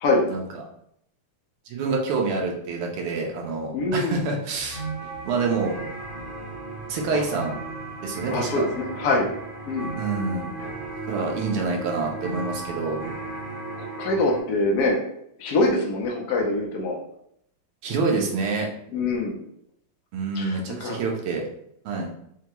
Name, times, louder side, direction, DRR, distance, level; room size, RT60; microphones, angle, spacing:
voice 1, 1.7-4.8 5.2-5.7 6.9-7.6 8.0-8.6 10.0-10.5 11.1-13.0 17.8-18.7 20.1-21.5 21.9-22.1, right 4 dB, 90° right, 0 dB, 1.7 m, -27 dB
voice 2, 3.7-4.2 7.1-7.2 8.3-9.3 9.7-9.9 13.7-17.0 17.9-18.2 18.9-19.4 20.3-21.0, left 2 dB, 60° left, -1 dB, 1.0 m, -25 dB
sound 1, 4.5-14.4, right 3 dB, 40° right, 0.7 m, -35 dB
5.5 x 2.2 x 2.9 m, 0.72 s
omnidirectional pair, 2.4 m